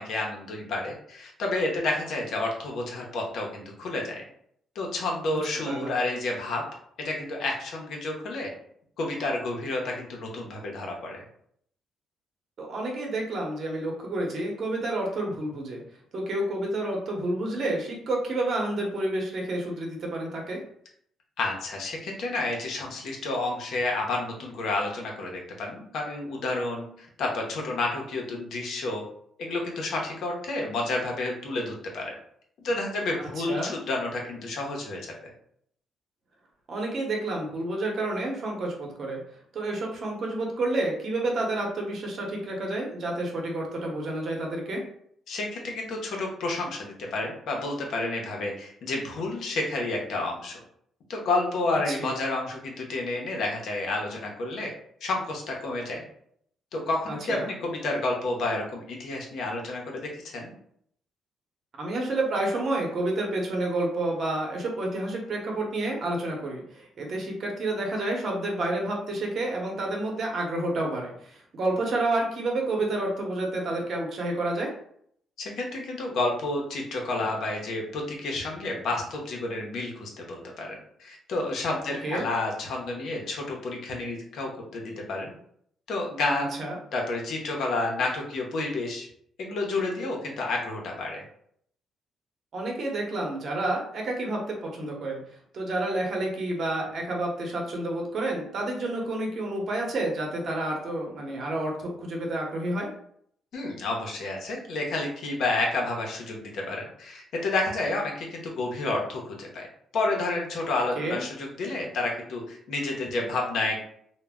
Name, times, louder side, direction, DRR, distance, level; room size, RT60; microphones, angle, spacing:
voice 1, 0.0-4.2 4.7-6.7 7.0-8.5 9.0-11.2 21.4-29.0 29.4-32.1 32.6-35.0 45.3-50.6 51.1-54.7 55.0-56.0 56.7-60.5 75.4-85.3 85.9-86.6 86.9-89.1 89.4-91.2 103.5-109.7 109.9-113.8, left 2 dB, 75° left, 0 dB, 0.7 m, -30 dB
voice 2, 5.7-6.0 12.6-15.8 16.1-20.6 33.4-33.8 36.7-39.2 39.5-44.8 51.9-52.1 57.1-57.5 61.8-74.7 82.0-82.3 86.6-86.8 92.5-95.2 95.5-102.9 111.0-111.2, right 2 dB, 55° right, 0 dB, 0.8 m, -29 dB
2.1 x 2.1 x 3.5 m, 0.67 s
cardioid pair, 90°, 0 cm